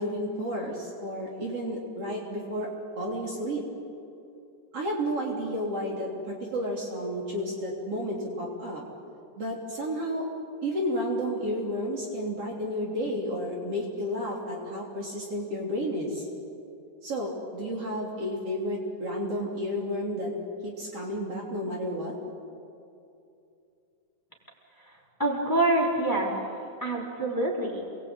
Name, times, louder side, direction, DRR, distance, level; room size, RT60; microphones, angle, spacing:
voice 1, 0.0-3.6 4.7-8.8 9.4-10.3 10.6-16.3 17.0-20.3 20.6-22.1, equal, 50° right, -2 dB, 4.1 m, -31 dB
voice 2, 24.8-26.4 26.8-27.8, right 2 dB, 5° left, -4 dB, 4.1 m, -26 dB
28.0 x 21.5 x 8.9 m, 2.6 s
omnidirectional pair, 3.5 m